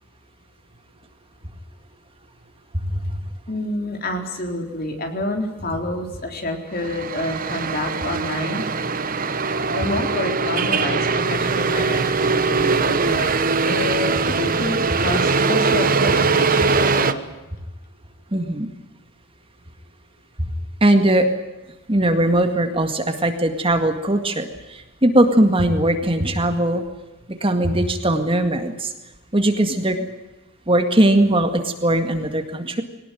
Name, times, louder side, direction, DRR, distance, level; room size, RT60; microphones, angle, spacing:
voice 1, 2.7-3.2 18.3-18.7 20.8-21.3 21.9-26.8 27.4-28.9 29.3-30.1 30.7-32.8, right 1 dB, 25° right, 6 dB, 2.0 m, -19 dB
voice 2, 3.5-8.7 9.7-13.3 13.6-17.3, left 1 dB, 45° left, 4 dB, 3.8 m, -28 dB
sound 1, 6.8-17.1, right 4 dB, 40° right, 1.1 m, -21 dB
22.0 x 19.0 x 9.2 m, 1.1 s
head